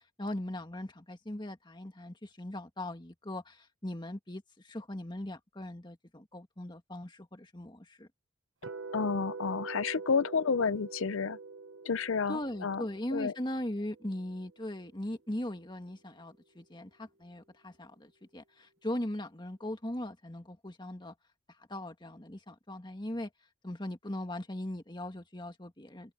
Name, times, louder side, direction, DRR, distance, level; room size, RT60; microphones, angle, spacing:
voice 1, 0.2-8.1 12.3-21.1 21.7-23.3 23.6-26.1, left 1 dB, 20° left, 1.8 m, -39 dB
sound 1, 8.6-14.7, right 4 dB, 65° right, 1.1 m, -45 dB
voice 2, 8.9-11.4 11.8-12.8 13.1-13.3, left 5 dB, 70° left, 0.6 m, -30 dB
head